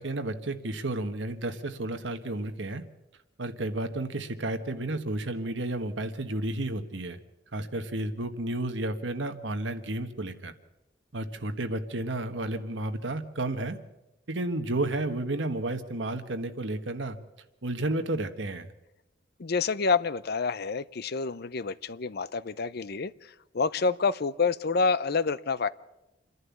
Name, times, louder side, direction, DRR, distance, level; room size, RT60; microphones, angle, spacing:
voice 1, 0.0-2.8 3.4-7.2 7.5-10.5 11.1-13.8 14.3-17.2 17.6-18.7, right 2 dB, 75° right, 8 dB, 1.4 m, -32 dB
voice 2, 19.4-23.1 23.5-25.7, left 4 dB, 55° left, 16 dB, 0.6 m, -28 dB
28.0 x 11.0 x 8.4 m, 0.97 s
head